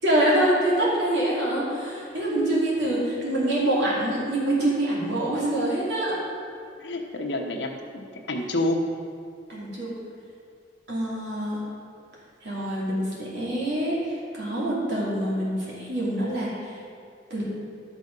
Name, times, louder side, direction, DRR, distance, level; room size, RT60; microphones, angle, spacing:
voice 1, 0.0-6.2 9.5-9.9 10.9-11.6 12.4-16.7 17.3-17.4, right 1 dB, 70° right, -7 dB, 3.0 m, -25 dB
voice 2, 6.8-8.8, left 1 dB, 80° left, 2 dB, 1.1 m, -28 dB
12.0 x 6.1 x 5.4 m, 2.3 s
head